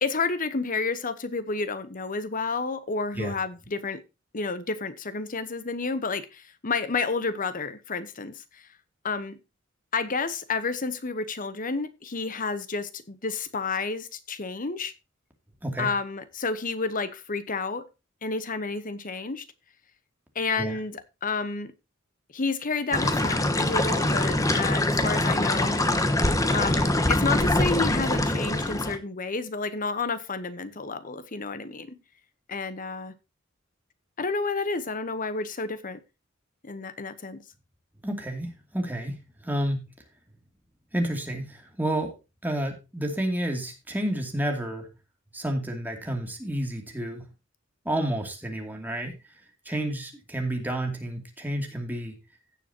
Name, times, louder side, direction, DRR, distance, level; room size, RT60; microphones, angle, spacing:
voice 1, 0.0-4.0 4.3-8.4 9.0-9.4 9.9-14.9 15.8-17.8 18.2-19.4 20.3-21.7 22.3-25.8 26.5-32.0 32.5-33.1 34.2-36.0 36.6-37.4, left 4 dB, 45° left, 1.0 m, -30 dB
sound 1, 22.9-29.0, left 1 dB, 15° left, 1.1 m, -24 dB
voice 2, 38.0-39.9 40.9-42.2 42.4-44.9 45.3-47.2 47.8-49.1 49.6-52.2, right 1 dB, 10° right, 2.5 m, -30 dB
16.0 x 7.0 x 2.8 m
head